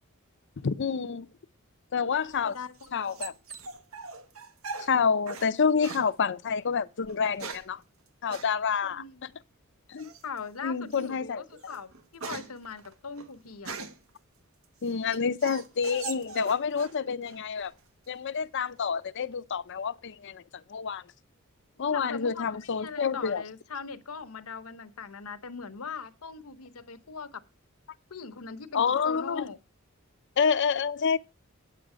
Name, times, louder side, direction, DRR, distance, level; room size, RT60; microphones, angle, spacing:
voice 1, 0.6-1.3 1.9-2.5 2.9-3.3 4.8-7.8 8.2-9.0 9.9-10.1 10.6-11.4 14.8-17.7 18.1-20.4 20.7-21.0 21.8-23.4 28.7-29.5 30.4-31.2, left 6 dB, 55° left, 0.6 m, -28 dB
sound 1, 2.2-5.5 5.8-6.1 7.0-7.8 8.3-8.5 10.0-10.4 10.9-11.1 11.5-14.1 14.6-17.0 17.3-17.9, right 4 dB, 75° right, 1.2 m, -41 dB
voice 2, 2.4-3.3 8.8-9.2 10.2-13.8 21.8-27.4 28.1-29.6, left 5 dB, 90° left, 1.0 m, -41 dB
9.0 x 7.6 x 5.0 m
head